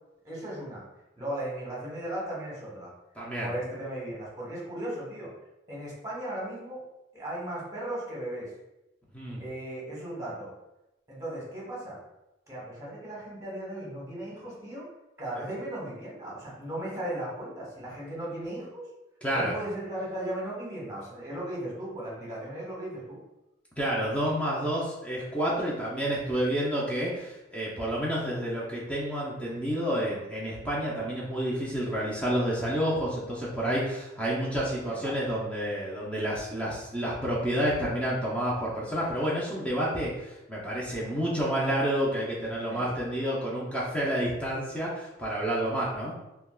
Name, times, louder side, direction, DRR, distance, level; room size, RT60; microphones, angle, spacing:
voice 1, 0.2-0.8 1.2-2.9 3.4-5.3 5.7-6.8 7.1-8.5 9.4-10.5 11.1-12.0 12.5-14.9 15.2-18.8 19.3-23.2 34.3-34.4 34.9-35.1 42.6-42.9, right 1 dB, 15° right, -5 dB, 0.9 m, -36 dB
voice 2, 3.2-3.5 9.1-9.4 19.2-19.5 23.8-46.1, equal, 5° left, -6 dB, 0.5 m, -29 dB
3.3 x 2.2 x 2.3 m, 0.95 s
head